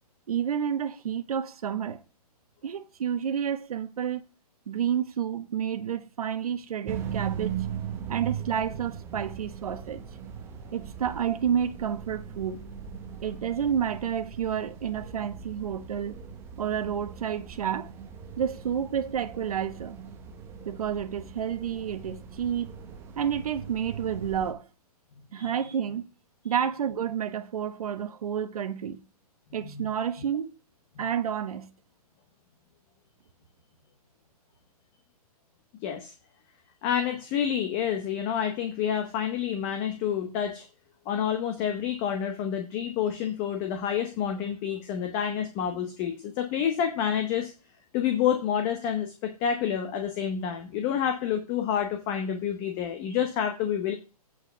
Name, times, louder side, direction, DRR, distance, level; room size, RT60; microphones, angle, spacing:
voice 1, 0.3-2.0 2.6-4.2 4.7-7.6 8.1-10.0 10.7-12.6 13.2-16.2 16.6-17.9 18.4-20.0 20.6-22.7 23.1-24.6 25.3-26.1 26.4-29.0 29.5-30.5 31.0-31.7, right 8 dB, 70° right, 1.1 m, -30 dB
sound 1, 6.9-24.5, right 8 dB, 10° right, 0.7 m, -39 dB
voice 2, 25.3-25.7 29.6-29.8 35.8-36.1 36.8-40.7 41.1-47.5 47.9-53.9, left 8 dB, 25° left, 0.9 m, -28 dB
8.6 x 4.6 x 5.6 m
hypercardioid pair, 155°, 20 cm